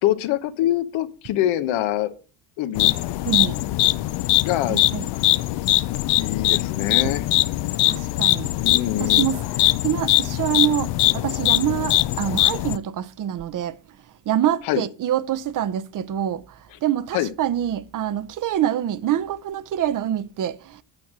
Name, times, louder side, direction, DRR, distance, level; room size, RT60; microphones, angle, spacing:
voice 1, 0.0-2.1 2.6-2.9 4.4-4.8 5.1-5.6 6.1-7.2 8.6-9.3 14.7-14.8 17.1-17.3, left 13 dB, 80° left, 1.2 m, -25 dB
sound 1, 2.8-12.8, left 17 dB, 60° left, 0.6 m, -21 dB
voice 2, 3.3-3.6 4.7-5.1 7.0-7.2 7.8-8.5 9.0-13.8 14.3-20.8, right 11 dB, 40° right, 0.7 m, -26 dB
9.6 x 6.3 x 6.1 m
cardioid pair, 115°, 47 cm